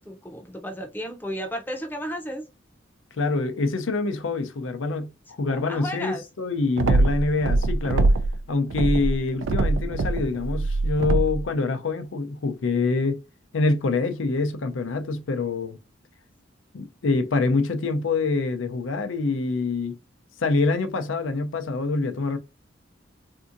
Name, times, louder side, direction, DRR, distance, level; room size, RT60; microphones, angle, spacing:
voice 1, 0.0-2.5 5.5-6.2, equal, 10° left, 0.6 m, -33 dB
voice 2, 3.2-8.1 8.5-13.2 13.5-15.8 16.7-19.9 20.4-22.4, left 3 dB, 85° left, 0.5 m, -25 dB
sound 1, 6.8-8.4 8.7-11.5, right 2 dB, 80° right, 0.4 m, -23 dB
3.5 x 2.7 x 2.5 m
head